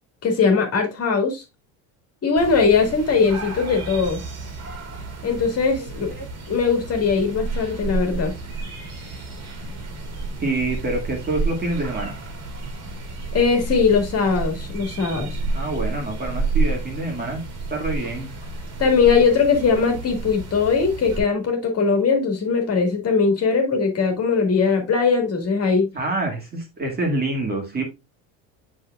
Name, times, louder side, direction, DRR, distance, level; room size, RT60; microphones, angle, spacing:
voice 1, 0.2-1.4 2.2-4.2 5.2-6.1 6.5-8.3 13.3-15.4 18.8-25.9, left 5 dB, 35° left, 2.2 m, -20 dB
sound 1, 2.4-21.2, right 3 dB, 40° right, 2.5 m, -30 dB
voice 2, 10.4-12.1 15.5-17.4 17.7-18.3 25.9-27.8, right 2 dB, 25° right, 2.1 m, -26 dB
7.6 x 6.3 x 2.3 m
cardioid pair, 125°, 41 cm